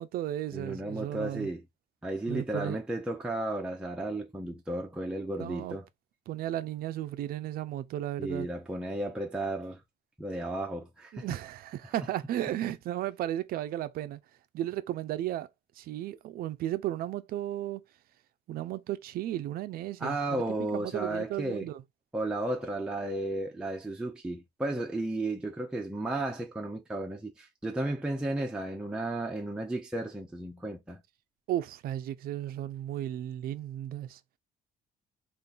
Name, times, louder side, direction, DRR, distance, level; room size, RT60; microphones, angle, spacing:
voice 1, 0.0-1.5 2.3-2.8 5.3-5.8 6.3-8.5 11.1-14.2 14.5-15.5 15.8-17.8 18.5-20.4 20.7-21.8 31.5-34.2, right 13 dB, 60° right, 0.4 m, -34 dB
voice 2, 0.5-1.6 2.0-5.9 8.2-9.8 10.2-11.3 20.0-21.7 22.1-31.0, right 1 dB, 5° right, 0.6 m, -34 dB
3.7 x 2.5 x 2.4 m
cardioid pair, 110°, 17 cm